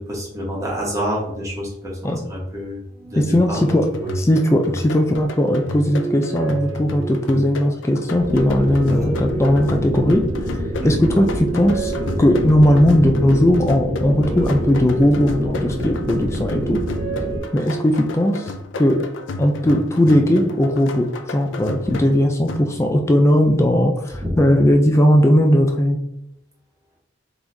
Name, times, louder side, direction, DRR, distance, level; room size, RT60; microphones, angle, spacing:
voice 1, 0.0-2.8 3.1-3.7 4.0-4.2 4.7-4.8 8.9-9.1 10.8-11.2 24.2-24.5, equal, 15° right, -4 dB, 1.3 m, -28 dB
sound 1, 2.9-5.0 5.5-7.5 8.2-10.4 10.8-12.9 13.6-15.7 16.2-18.2, right 6 dB, 60° right, 1.2 m, -34 dB
voice 2, 3.2-3.9 4.1-10.2 10.8-11.9 12.2-16.8 17.5-19.0 19.4-26.0, equal, 15° left, 3 dB, 0.4 m, -17 dB
sound 2, 3.4-23.1, left 2 dB, 90° left, 0.5 m, -33 dB
sound 3, 8.2-17.4, equal, 45° right, 0.8 m, -27 dB
3.9 x 3.0 x 3.9 m, 0.81 s
head